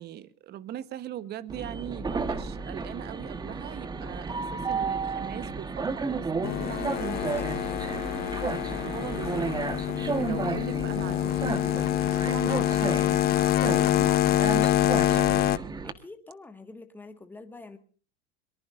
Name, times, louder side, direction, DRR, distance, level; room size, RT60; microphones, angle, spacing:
voice 1, 0.0-7.1 8.8-15.5, right 12 dB, 35° right, 16 dB, 1.1 m, -41 dB
Train, 1.5-15.9, right 4 dB, 15° right, 1.3 m, -33 dB
sound 1, 6.4-15.6, left 14 dB, 30° left, 0.7 m, -26 dB
voice 2, 6.8-8.7 15.8-17.8, left 3 dB, 5° left, 7 dB, 1.7 m, -46 dB
23.5 x 22.5 x 2.5 m, 0.40 s
supercardioid pair, 140°, 29 cm